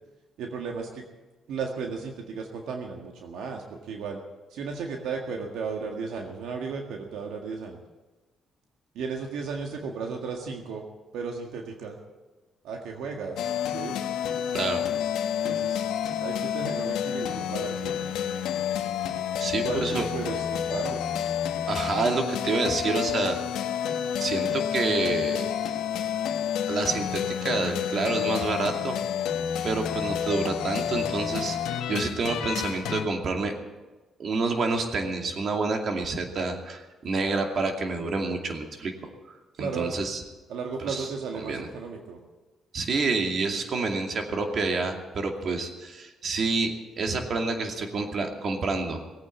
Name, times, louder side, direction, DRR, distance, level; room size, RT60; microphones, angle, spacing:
voice 1, 0.4-1.0 1.5-4.2 4.5-7.8 8.9-10.9 11.1-12.0 12.6-14.0 15.4-15.8 16.2-17.9 19.5-21.0 39.6-39.9 40.5-42.2, right 5 dB, 85° right, 2 dB, 1.8 m, -34 dB
sound 1, 13.4-33.1, left 9 dB, 90° left, 1.1 m, -29 dB
voice 2, 19.4-20.1 21.7-23.4 24.2-25.6 26.7-29.0 29.6-33.5 34.2-38.9 39.6-40.2 40.9-41.1 41.4-41.7 42.7-46.7 47.0-49.0, right 3 dB, 55° right, 3 dB, 2.4 m, -28 dB
19.0 x 8.7 x 8.6 m, 1.2 s
cardioid pair, 90°, 0 cm